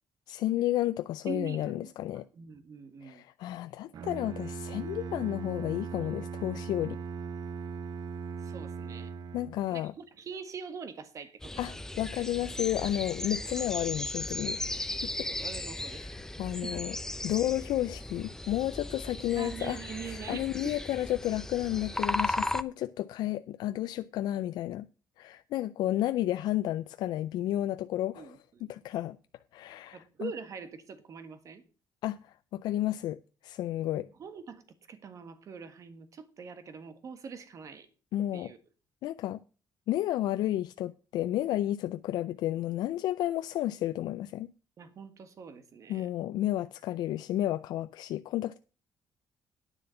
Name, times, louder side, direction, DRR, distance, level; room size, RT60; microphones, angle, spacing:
voice 1, 0.3-2.3 3.0-7.0 9.3-9.9 11.6-14.9 15.2-15.3 15.8-17.0 17.2-24.9 25.2-29.2 29.5-30.3 32.0-33.2 33.4-34.1 38.1-38.5 39.0-39.4 39.9-44.5 45.9-48.6, left 13 dB, 85° left, 0.4 m, -32 dB
voice 2, 1.2-3.2 8.4-9.1 9.7-11.6 15.3-16.0 16.6-16.8 19.3-20.9 28.2-28.6 29.9-31.6 34.2-37.9 38.3-38.6 44.8-46.1, right 6 dB, 50° right, 1.6 m, -43 dB
Bowed string instrument, 3.9-9.8, right 6 dB, 65° right, 0.9 m, -39 dB
sound 1, 11.4-22.6, left 1 dB, 5° left, 0.6 m, -36 dB
9.9 x 7.0 x 5.7 m
cardioid pair, 115°, 7 cm